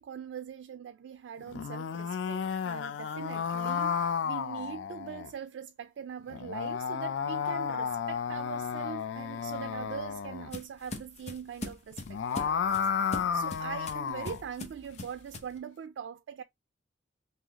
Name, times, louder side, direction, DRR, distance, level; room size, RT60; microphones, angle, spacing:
voice 1, 0.0-16.4, right 7 dB, 80° right, 0.3 m, -42 dB
sound 1, 1.4-5.3 6.3-10.5 11.9-14.4, left 7 dB, 85° left, 0.4 m, -32 dB
sound 2, 9.5-15.6, left 2 dB, 40° left, 0.7 m, -42 dB
3.9 x 2.7 x 2.8 m
head